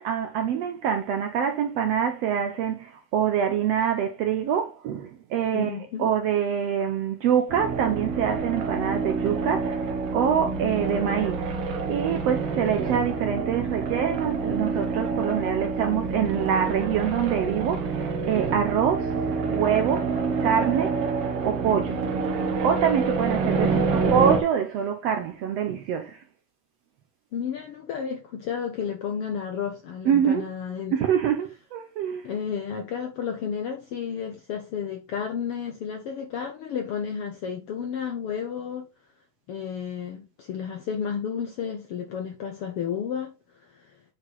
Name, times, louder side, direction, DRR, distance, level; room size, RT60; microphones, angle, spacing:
voice 1, 0.0-5.7 6.0-9.8 10.1-11.5 11.9-19.2 19.5-20.1 20.4-21.0 21.4-22.0 22.6-26.2 30.1-30.5 30.9-32.3, right 8 dB, 75° right, 1.5 m, -25 dB
voice 2, 5.5-6.1 23.4-23.8 27.3-30.9 32.2-38.9 39.5-44.0, left 7 dB, 75° left, 1.3 m, -32 dB
sound 1, 7.5-24.4, right 4 dB, 55° right, 1.9 m, -27 dB
7.9 x 4.6 x 3.9 m
omnidirectional pair, 3.7 m